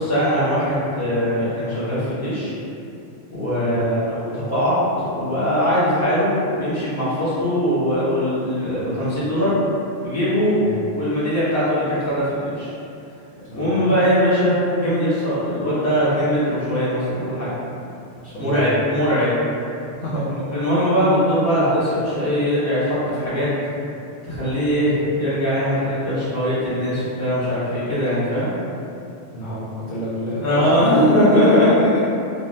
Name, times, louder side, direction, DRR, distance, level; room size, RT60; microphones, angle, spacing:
voice 1, 0.0-2.5 3.3-9.5 10.0-10.6 10.9-12.7 13.5-17.5 18.4-19.4 20.3-23.5 24.2-28.5 30.4-31.7, equal, 15° left, -12 dB, 0.8 m, -21 dB
voice 2, 3.5-3.8 10.5-10.7 13.5-13.9 18.2-18.8 20.0-20.3 29.3-30.8 31.3-32.0, equal, 60° left, -9 dB, 0.6 m, -28 dB
3.4 x 2.0 x 2.6 m, 2.7 s
omnidirectional pair, 1.4 m